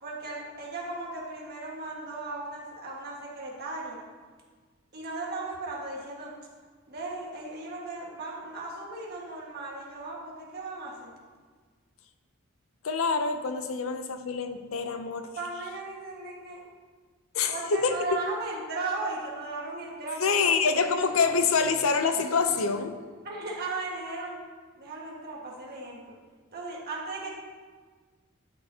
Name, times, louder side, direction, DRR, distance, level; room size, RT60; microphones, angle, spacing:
voice 1, 0.0-4.0 4.9-6.4 6.9-11.1 15.4-16.7 17.5-20.4 20.7-20.9 23.2-24.4 24.8-26.1 26.5-27.3, right 3 dB, 50° right, -3 dB, 1.7 m, -36 dB
voice 2, 12.8-15.3 17.3-18.2 20.2-23.0, left 5 dB, 80° left, 8 dB, 0.6 m, -26 dB
11.0 x 6.5 x 2.8 m, 1.5 s
head